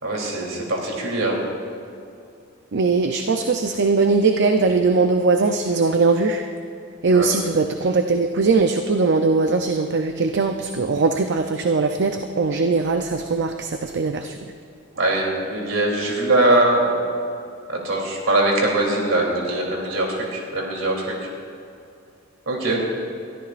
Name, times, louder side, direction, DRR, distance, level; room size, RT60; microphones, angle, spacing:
voice 1, 0.0-1.4 7.1-7.3 14.9-16.9 17.7-21.1 22.5-22.8, right 2 dB, 75° right, -1 dB, 3.2 m, -22 dB
voice 2, 2.7-6.5 7.0-14.4, right 4 dB, 60° right, 6 dB, 0.6 m, -20 dB
22.5 x 13.5 x 2.5 m, 2.6 s
head